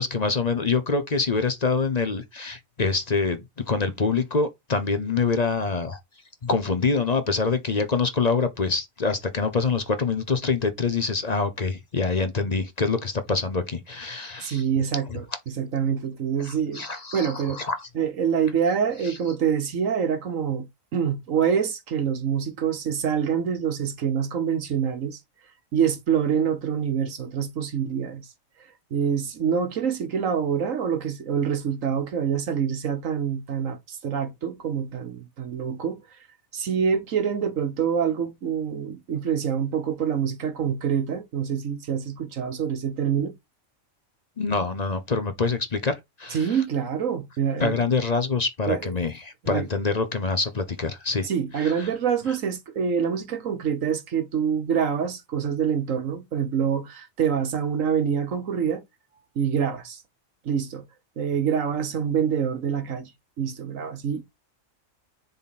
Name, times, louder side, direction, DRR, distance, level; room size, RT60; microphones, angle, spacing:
voice 1, 0.0-6.0 6.4-14.6 15.1-15.2 16.4-17.9 19.0-19.2 44.4-46.6 47.6-51.3 51.6-51.9, left 4 dB, 35° left, 0.8 m, -25 dB
voice 2, 14.4-16.8 17.1-17.6 17.9-20.7 20.9-25.2 25.7-28.2 28.9-36.0 36.5-43.3 46.3-47.7 48.7-48.9 49.4-49.6 51.2-58.8 59.3-60.0 60.4-60.8 61.2-63.1 63.4-64.2, right 7 dB, 70° right, 1.5 m, -26 dB
7.1 x 4.1 x 4.1 m
omnidirectional pair, 1.4 m